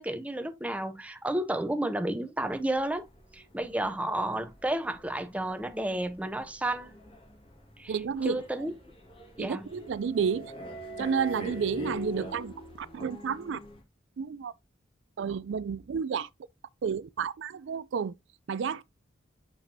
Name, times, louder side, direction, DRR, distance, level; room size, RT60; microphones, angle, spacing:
voice 1, 0.0-3.1 3.3-6.9 7.8-8.0 8.2-8.7 9.4-9.7, right 1 dB, 5° right, 0.5 m, -31 dB
sound 1, 2.4-13.8, left 1 dB, 30° left, 1.9 m, -44 dB
voice 2, 7.9-8.4 9.4-10.5 11.0-13.6 14.2-14.5 15.2-16.3 16.8-18.1 18.5-18.8, right 6 dB, 65° right, 0.4 m, -31 dB
6.9 x 5.8 x 2.7 m
head